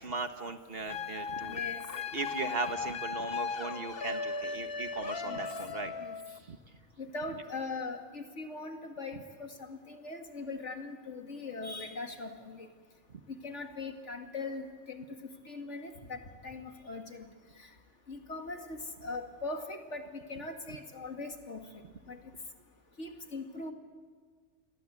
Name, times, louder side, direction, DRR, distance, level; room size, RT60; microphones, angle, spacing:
voice 1, 0.0-1.6 1.9-5.9 6.5-6.6, right 3 dB, 50° right, 8 dB, 1.5 m, -38 dB
sound 1, 0.9-6.4, left 5 dB, 50° left, 1.2 m, -37 dB
voice 2, 1.4-1.9 3.6-3.7 5.2-5.4 6.0-6.2 7.0-12.7 13.3-15.1 15.5-17.3 17.6-17.7 18.1-22.2 23.0-23.7, left 3 dB, 65° left, 5 dB, 2.6 m, -41 dB
29.0 x 22.5 x 8.4 m, 1.6 s
omnidirectional pair, 1.3 m